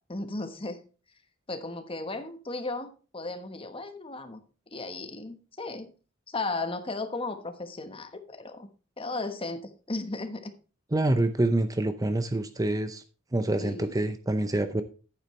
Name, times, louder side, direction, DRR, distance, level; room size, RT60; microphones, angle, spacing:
voice 1, 0.1-0.8 1.5-4.4 4.7-5.9 6.3-8.7 9.0-10.5 13.6-14.0, left 2 dB, 25° left, 8 dB, 1.2 m, -35 dB
voice 2, 10.9-13.0 13.3-14.8, right 1 dB, 20° right, 10 dB, 0.6 m, -26 dB
10.5 x 9.4 x 3.2 m, 0.35 s
head